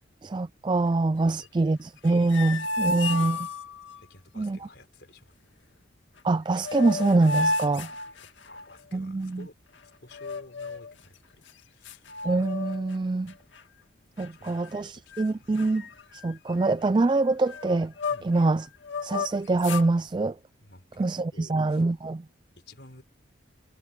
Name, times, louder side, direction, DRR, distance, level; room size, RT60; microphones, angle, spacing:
voice 1, 0.2-3.5 4.4-4.6 6.2-7.9 8.9-9.5 12.2-13.3 14.2-15.8 16.1-17.9 18.2-18.6 19.0-20.4 21.0-22.2, right 3 dB, 25° right, 0.3 m, -25 dB
voice 2, 1.2-1.7 4.0-5.3 5.6-5.7 8.1-9.5 10.0-12.1 14.3-15.5 18.1-18.3 20.6-21.8 22.6-23.0, left 2 dB, 60° left, 5.1 m, -52 dB
sound 1, 2.0-4.0 6.2-6.3 6.5-8.8 10.1-10.9 11.5-11.6 11.8-13.0 13.3-13.6 14.2-14.8 15.1-15.3 15.5-18.4 18.8-19.9, left 3 dB, 85° left, 2.0 m, -33 dB
head